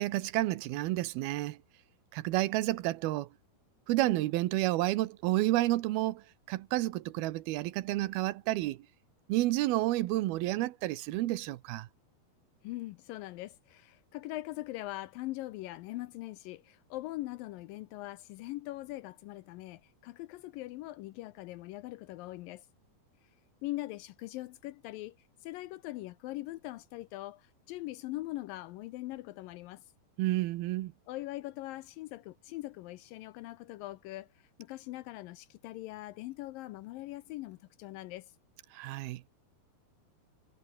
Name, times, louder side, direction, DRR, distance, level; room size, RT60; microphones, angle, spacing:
voice 1, 0.0-1.6 2.1-3.3 3.9-8.9 9.3-11.9 30.2-30.9 38.7-39.2, right 17 dB, 80° right, 2.8 m, -30 dB
voice 2, 12.6-22.7 23.6-29.8 31.1-38.3, left 17 dB, 80° left, 2.2 m, -42 dB
omnidirectional pair, 4.4 m